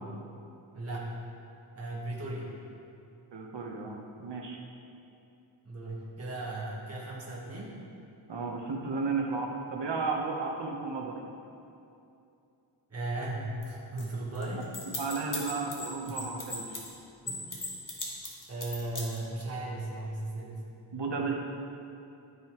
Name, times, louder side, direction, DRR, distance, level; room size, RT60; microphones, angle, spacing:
voice 1, 0.7-1.2 1.7-2.5 5.6-7.8 12.9-14.7 16.1-16.2 17.2-17.5 18.5-20.6, right 2 dB, 30° right, -5 dB, 1.4 m, -36 dB
voice 2, 3.3-4.6 8.3-11.2 15.0-16.8 20.9-21.4, right 4 dB, 60° right, 1 dB, 1.1 m, -33 dB
sound 1, 13.6-13.7 14.0-14.1 14.3-16.9 17.3-19.4, left 2 dB, 40° left, 1.5 m, -36 dB
13.5 x 5.5 x 3.0 m, 2.7 s
wide cardioid pair, 100°, 48 cm